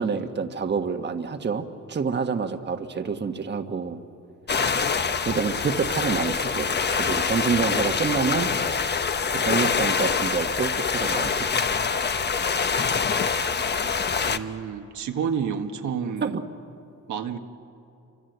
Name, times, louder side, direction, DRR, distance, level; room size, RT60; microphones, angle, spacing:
voice 1, 0.0-4.0 5.2-8.5 9.3-11.6 16.2-16.4, right 5 dB, 35° right, 1.5 m, -27 dB
sound 1, 4.5-14.4, left 5 dB, 35° left, 1.2 m, -25 dB
voice 2, 14.3-16.4 17.1-17.4, right 7 dB, 75° right, 1.7 m, -29 dB
28.0 x 25.0 x 8.1 m
cardioid pair, 90°, 30 cm